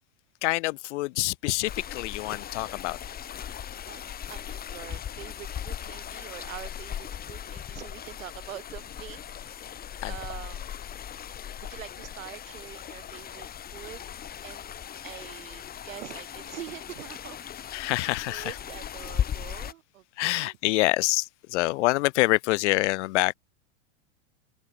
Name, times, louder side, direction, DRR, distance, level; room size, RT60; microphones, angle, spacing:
voice 1, 0.4-3.0 10.0-10.1 17.7-18.5 20.2-23.3, left 20 dB, 60° left, 0.6 m, -26 dB
sound 1, 1.7-19.7, left 9 dB, 25° left, 4.4 m, -38 dB
voice 2, 4.3-9.7 10.0-10.7 11.6-14.0 14.4-14.8 15.0-17.4 17.9-20.6, right 13 dB, 80° right, 3.6 m, -44 dB
supercardioid pair, 140°, 39 cm